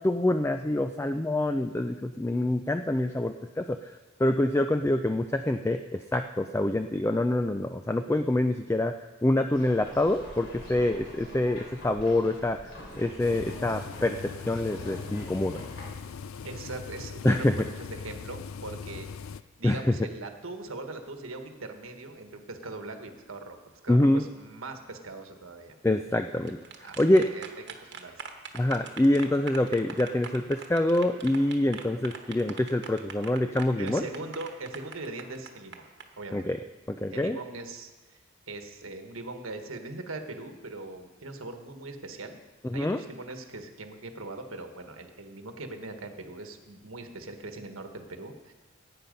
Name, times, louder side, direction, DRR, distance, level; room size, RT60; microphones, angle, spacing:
voice 1, 0.0-3.9 4.2-8.9 9.2-12.7 13.0-15.6 17.2-17.6 19.6-19.8 23.9-24.2 25.8-27.3 28.5-34.1 36.3-36.6 36.9-37.4 42.6-43.0, left 1 dB, 15° left, 7 dB, 0.3 m, -26 dB
sound 1, 9.5-15.9, left 1 dB, 60° left, 3.3 m, -45 dB
sound 2, 13.2-19.4, left 6 dB, 80° left, 0.4 m, -40 dB
voice 2, 16.4-19.1 19.6-25.8 26.8-27.4 27.9-28.2 33.7-35.9 36.2-36.5 37.1-42.4 42.7-48.5, right 2 dB, 85° right, 6 dB, 1.4 m, -41 dB
sound 3, 26.3-36.0, right 6 dB, 55° right, 1.2 m, -43 dB
17.0 x 8.6 x 5.2 m, 1.3 s
head